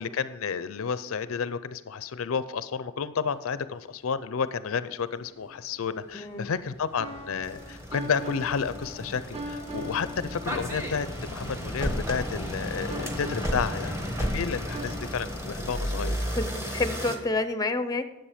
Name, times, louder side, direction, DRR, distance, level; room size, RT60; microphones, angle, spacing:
voice 1, 0.0-16.2, left 6 dB, 80° left, 14 dB, 0.5 m, -31 dB
sound 1, 5.4-5.7 6.3-17.2, equal, 15° right, 1.2 m, -33 dB
voice 2, 6.1-6.5 16.3-18.0, left 2 dB, 20° left, 10 dB, 0.6 m, -29 dB
sound 2, 7.0-15.1, equal, 30° right, 1.2 m, -42 dB
10.0 x 7.5 x 5.0 m, 1.1 s
head